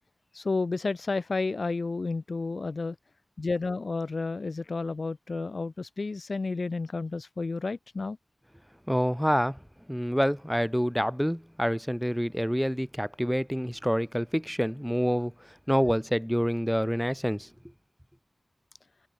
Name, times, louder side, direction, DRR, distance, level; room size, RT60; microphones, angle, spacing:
voice 1, 0.3-3.0 3.4-8.2, left 3 dB, 65° left, 0.5 m, -31 dB
voice 2, 8.9-9.6 9.9-15.3 15.7-17.5, equal, ahead, 2.3 m, -27 dB
wide cardioid pair, 85°, 0 cm